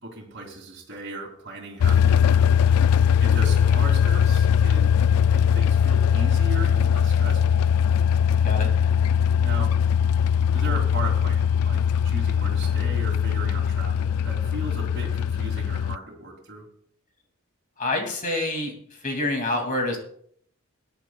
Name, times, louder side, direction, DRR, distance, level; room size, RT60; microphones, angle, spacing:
voice 1, 0.0-4.9 5.3-7.6 9.4-9.8 10.5-16.7, right 2 dB, 50° right, -4 dB, 2.7 m, -37 dB
sound 1, 1.8-16.0, left 8 dB, 90° left, 0.3 m, -20 dB
voice 2, 17.8-20.0, left 2 dB, 35° left, 3 dB, 2.5 m, -27 dB
20.5 x 10.5 x 2.4 m, 0.65 s
head